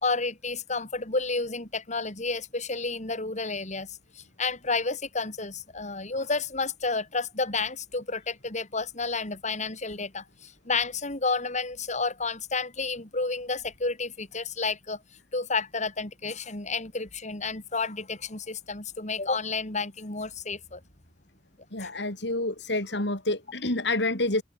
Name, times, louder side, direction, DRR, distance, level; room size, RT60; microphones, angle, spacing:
voice 1, 0.0-15.0 15.3-20.8 21.8-21.9, left 4 dB, 40° left, 4.6 m, -31 dB
voice 2, 21.7-24.4, left 2 dB, 70° left, 5.4 m, -28 dB
head